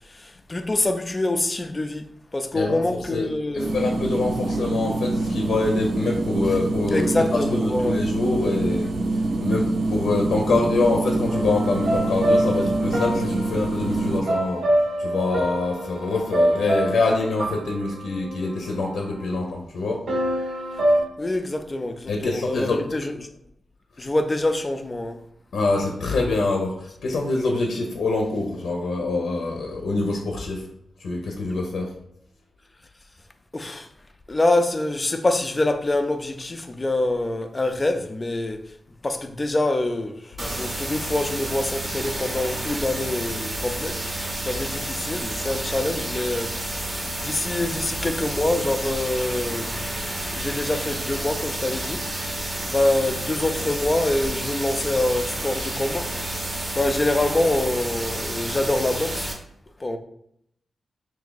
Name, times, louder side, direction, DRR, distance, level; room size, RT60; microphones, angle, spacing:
voice 1, 0.1-2.1 2.3-3.7 6.9-8.0 21.2-23.1 24.0-25.2 33.5-33.9 34.3-38.6 39.0-49.8 50.1-52.0 52.7-56.1 56.7-59.3 59.8-60.0, left 2 dB, 20° left, 0.4 m, -25 dB
voice 2, 2.5-3.3 3.5-8.9 9.4-14.6 15.0-20.0 22.1-22.8 25.5-30.6 31.0-31.9, left 3 dB, 85° left, 0.6 m, -25 dB
sound 1, 3.6-14.2, right 2 dB, 65° right, 0.5 m, -25 dB
sound 2, 11.3-19.3 20.1-21.0, right 1 dB, 85° right, 1.0 m, -26 dB
sound 3, 40.4-59.3, right 1 dB, 20° right, 0.6 m, -30 dB
3.4 x 2.7 x 3.9 m
wide cardioid pair, 135°, 0 cm